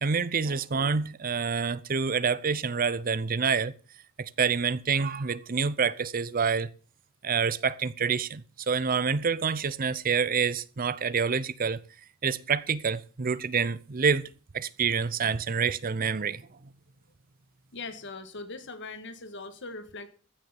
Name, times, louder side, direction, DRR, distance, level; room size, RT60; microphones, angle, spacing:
voice 1, 0.0-3.7 4.2-6.7 7.2-11.8 12.2-14.3 14.5-16.4, right 5 dB, 40° right, 0.6 m, -27 dB
voice 2, 17.7-20.1, left 3 dB, 55° left, 1.7 m, -40 dB
15.0 x 6.7 x 7.0 m
head